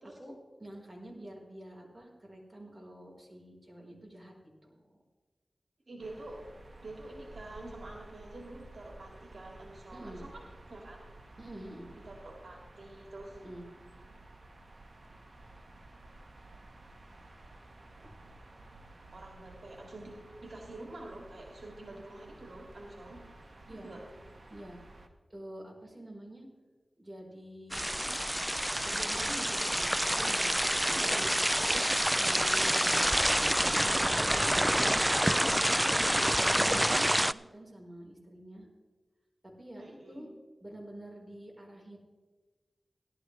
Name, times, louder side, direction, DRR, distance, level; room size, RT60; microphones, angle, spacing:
voice 1, 0.6-4.3 4.6-5.0 9.9-10.2 11.4-11.8 13.4-13.7 23.7-23.9 24.5-24.8 25.3-26.4 27.0-27.8 28.8-30.6 30.9-31.4 32.2-38.7 39.6-40.3 40.6-42.0, right 1 dB, 25° right, -2 dB, 4.3 m, -48 dB
voice 2, 5.9-6.4 6.8-10.4 10.7-11.0 12.1-13.4 19.1-20.2 20.4-23.2 23.7-24.0 30.8-31.9 39.8-40.3, right 2 dB, 75° right, 0 dB, 2.3 m, -47 dB
sound 1, 6.0-25.1, right 2 dB, 50° right, 1.3 m, -53 dB
sound 2, 27.7-37.3, equal, 10° right, 0.3 m, -27 dB
17.5 x 12.0 x 3.3 m, 1.3 s
wide cardioid pair, 50°, 0 cm